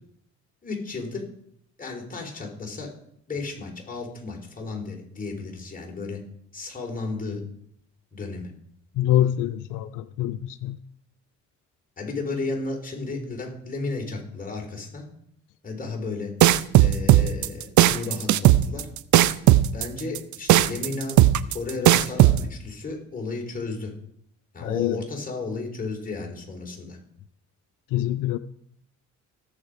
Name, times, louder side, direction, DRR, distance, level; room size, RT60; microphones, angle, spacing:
voice 1, 0.6-1.2 1.8-2.9 3.3-6.2 6.5-7.4 8.1-8.5 12.0-15.0 15.6-16.3 16.8-18.9 19.7-21.2 21.5-23.9 24.5-27.0, left 3 dB, 30° left, 0 dB, 4.2 m, -33 dB
voice 2, 9.0-10.8 24.6-25.0 27.9-28.4, left 12 dB, 90° left, 12 dB, 0.6 m, -25 dB
sound 1, 16.4-22.4, right 14 dB, 75° right, 0.6 m, -16 dB
18.0 x 7.3 x 5.1 m, 0.69 s
cardioid pair, 90°, 30 cm